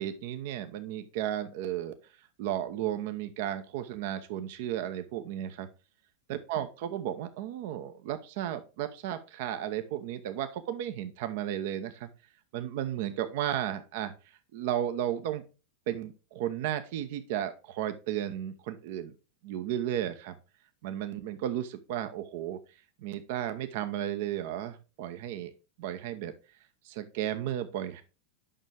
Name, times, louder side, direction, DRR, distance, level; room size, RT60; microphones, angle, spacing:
voice 1, 0.0-1.9 2.4-5.7 6.3-12.1 12.5-14.1 14.5-15.4 15.9-19.1 19.4-20.3 20.8-22.6 23.0-25.5 25.8-26.3 26.8-28.0, right 11 dB, 50° right, 9 dB, 0.8 m, -34 dB
8.9 x 6.2 x 3.4 m, 0.32 s
figure-of-eight pair, 90°, 0 cm